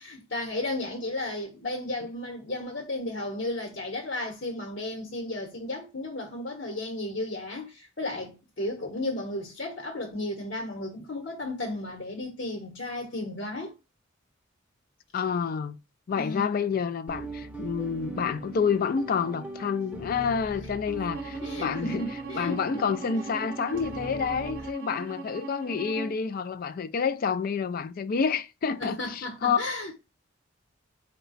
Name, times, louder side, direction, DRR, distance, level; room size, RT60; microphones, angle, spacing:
voice 1, 0.0-13.7 16.2-16.6 20.9-21.1 21.4-22.7 28.8-29.9, left 2 dB, 60° left, 1.0 m, -34 dB
voice 2, 15.1-15.8 16.1-22.0 22.3-29.6, left 6 dB, 45° left, 0.3 m, -28 dB
sound 1, 17.1-24.7, right 3 dB, 10° right, 0.6 m, -40 dB
Bowed string instrument, 21.1-26.2, right 3 dB, 45° right, 0.6 m, -40 dB
4.8 x 2.2 x 3.9 m
head